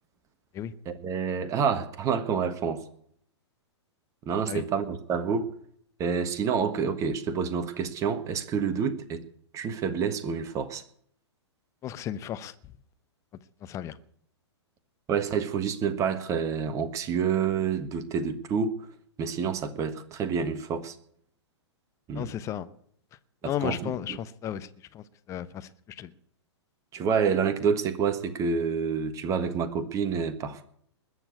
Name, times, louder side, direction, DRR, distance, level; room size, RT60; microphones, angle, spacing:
voice 1, 0.8-2.8 4.2-5.5 6.0-9.2 9.5-10.8 15.1-18.9 19.2-21.0 22.1-22.4 23.4-24.2 26.9-30.6, right 6 dB, 20° right, 1.4 m, -28 dB
voice 2, 11.8-12.5 13.6-14.0 22.1-22.7 23.4-25.7 26.0-26.1, left 10 dB, 20° left, 0.8 m, -34 dB
21.0 x 7.1 x 8.3 m
figure-of-eight pair, 110°, 15 cm